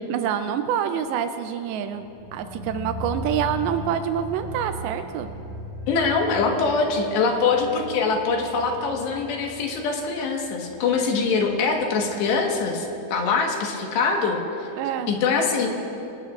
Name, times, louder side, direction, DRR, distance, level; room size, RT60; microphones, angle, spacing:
voice 1, 0.1-2.1 2.3-5.3 14.8-15.1, right 9 dB, 90° right, 8 dB, 2.1 m, -26 dB
sound 1, 1.9-12.9 13.1-13.2, left 1 dB, 50° right, 1.7 m, -38 dB
voice 2, 5.9-14.7 15.1-15.7, left 4 dB, 75° left, 1 dB, 3.6 m, -23 dB
25.0 x 19.0 x 2.5 m, 3.0 s
omnidirectional pair, 5.0 m